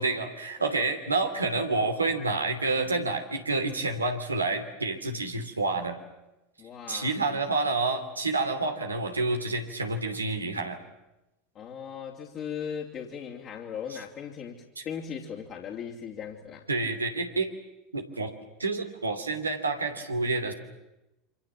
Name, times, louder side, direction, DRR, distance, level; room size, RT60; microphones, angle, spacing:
voice 1, 0.0-6.0 6.9-10.8 13.9-14.0 14.8-14.9 16.7-17.5 17.9-18.3 18.6-20.5, right 3 dB, 90° right, 5 dB, 3.0 m, -28 dB
voice 2, 6.6-7.1 11.5-16.7, left 7 dB, 40° left, -1 dB, 3.0 m, -38 dB
27.5 x 26.5 x 7.4 m, 0.95 s
figure-of-eight pair, 80°, 0 cm